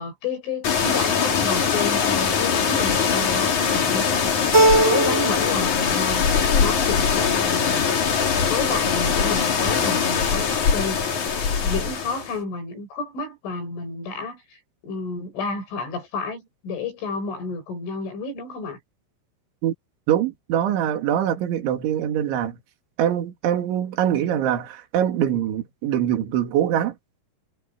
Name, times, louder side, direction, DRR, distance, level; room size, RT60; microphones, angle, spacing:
voice 1, 0.0-4.3 4.8-6.2 6.6-7.8 8.5-11.0 11.6-14.6 14.8-18.8, left 4 dB, 65° left, 9.5 m, -30 dB
sound 1, 0.6-12.3, left 6 dB, 40° left, 3.7 m, -22 dB
Keyboard (musical), 4.5-5.6 6.0-6.7, right 2 dB, 10° right, 7.3 m, -20 dB
voice 2, 20.1-22.6 23.0-26.9, right 10 dB, 65° right, 4.9 m, -23 dB
omnidirectional pair, 5.9 m